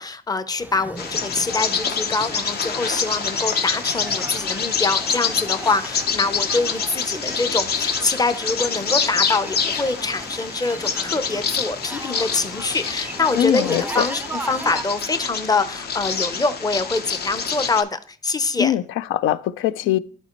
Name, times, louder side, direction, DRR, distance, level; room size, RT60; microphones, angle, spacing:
voice 1, 0.0-18.7 19.8-20.0, left 3 dB, 20° left, 0.7 m, -25 dB
sound 1, 0.6-14.8, right 2 dB, 10° right, 0.4 m, -37 dB
Bird vocalization bird call bird song, 1.0-17.8, left 6 dB, 55° left, 0.8 m, -26 dB
voice 2, 13.3-14.0 18.6-20.0, left 12 dB, 90° left, 0.4 m, -21 dB
12.0 x 4.2 x 3.0 m
cardioid pair, 90°, 20 cm